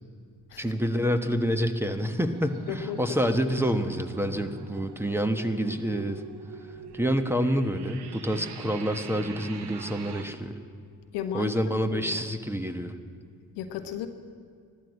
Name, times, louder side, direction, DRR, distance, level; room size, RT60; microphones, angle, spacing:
voice 1, 0.6-6.2 6.9-10.6 11.3-12.9, equal, 5° right, 7 dB, 1.3 m, -27 dB
sound 1, 1.9-10.2, right 7 dB, 70° right, 1.2 m, -44 dB
voice 2, 2.7-3.5 11.1-11.5 11.9-12.2 13.6-14.1, left 10 dB, 80° left, 8 dB, 1.0 m, -34 dB
14.0 x 12.5 x 7.6 m, 2.2 s
hypercardioid pair, 45°, 41 cm